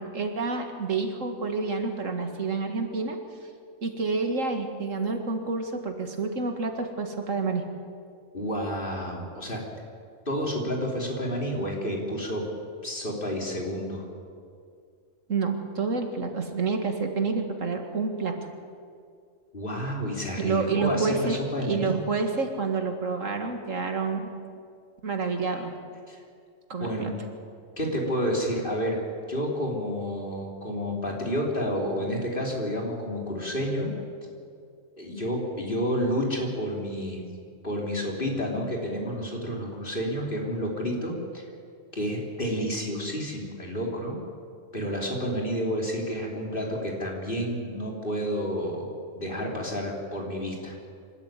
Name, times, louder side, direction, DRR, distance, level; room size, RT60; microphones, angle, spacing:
voice 1, 0.0-3.2 3.8-7.6 15.3-18.3 20.4-24.3 25.0-25.7 26.7-27.1, right 4 dB, 70° right, 5 dB, 2.2 m, -28 dB
voice 2, 8.3-9.6 10.3-12.5 12.8-14.1 19.5-22.0 26.1-26.2 26.8-27.2 27.8-29.0 29.3-33.9 35.0-37.2 37.6-41.4 41.9-44.2 44.7-50.7, equal, 40° left, -1 dB, 3.8 m, -30 dB
27.0 x 12.5 x 9.2 m, 2.3 s
omnidirectional pair, 1.4 m